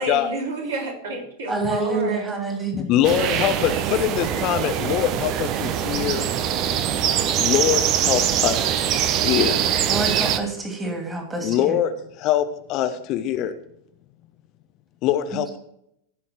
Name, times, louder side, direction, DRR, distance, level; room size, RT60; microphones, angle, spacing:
voice 1, 0.0-2.3, right 2 dB, 60° right, -1 dB, 3.4 m, -31 dB
voice 2, 1.5-2.9 9.9-11.5, right 3 dB, 10° right, 3 dB, 2.8 m, -27 dB
voice 3, 2.7-6.3 7.4-9.6 11.4-13.5 15.0-15.6, left 11 dB, 40° left, 9 dB, 0.8 m, -23 dB
sound 1, 3.0-10.4, right 9 dB, 40° right, 0.8 m, -23 dB
15.5 x 5.7 x 4.5 m, 0.76 s
figure-of-eight pair, 90°, 0 cm